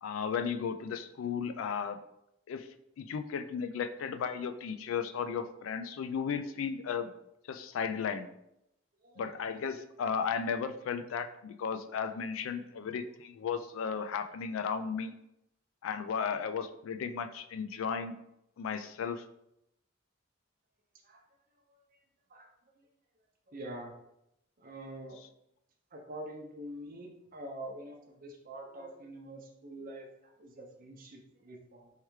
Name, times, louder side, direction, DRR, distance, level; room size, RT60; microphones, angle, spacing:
voice 1, 0.0-2.0 2.5-2.7 3.0-7.1 7.5-8.3 9.2-15.2 15.8-18.1 18.6-19.3, left 6 dB, 90° left, 10 dB, 0.3 m, -35 dB
voice 2, 9.0-9.3 21.0-21.2 21.7-22.0 22.3-22.5 22.7-22.9 23.5-23.9 24.6-25.2 25.9-31.9, right 1 dB, 45° right, 2 dB, 0.7 m, -46 dB
3.4 x 3.1 x 3.1 m, 0.81 s
head